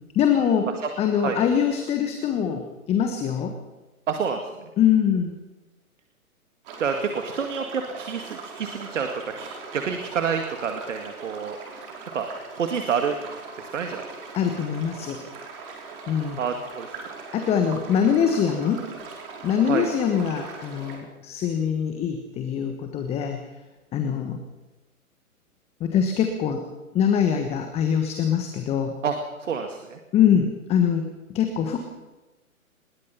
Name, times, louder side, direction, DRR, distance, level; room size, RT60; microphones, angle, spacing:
voice 1, 0.1-3.6 4.8-5.3 14.3-15.2 16.1-16.4 17.3-18.8 19.4-23.4 23.9-24.4 25.8-26.6 26.9-29.0 30.1-31.8, left 8 dB, 15° left, 6 dB, 1.3 m, -23 dB
voice 2, 4.1-4.7 6.8-9.1 9.4-11.6 12.1-12.3 12.5-13.2 13.6-14.0 16.4-16.9 19.7-19.9 29.0-29.1 29.4-30.0, right 6 dB, 55° right, 5 dB, 2.2 m, -28 dB
sound 1, 6.6-21.0, right 4 dB, 40° right, 5.6 m, -40 dB
24.0 x 21.0 x 5.7 m, 1.1 s
figure-of-eight pair, 130°, 44 cm